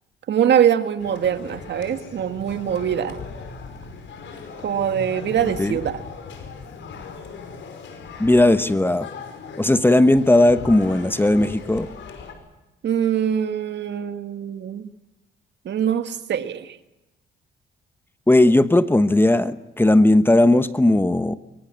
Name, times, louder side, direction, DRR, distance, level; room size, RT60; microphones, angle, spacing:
voice 1, 0.3-3.2 4.6-6.0 12.8-14.9 15.7-16.8, right 9 dB, 60° right, 9 dB, 1.9 m, -23 dB
Chinese Stall Pangkor Town, 1.0-12.3, left 5 dB, 70° left, 5.4 m, -38 dB
voice 2, 8.2-9.1 9.6-11.9 18.3-21.4, left 1 dB, 10° left, 12 dB, 1.1 m, -17 dB
24.0 x 23.5 x 7.7 m, 1.0 s
cardioid pair, 90°, 20 cm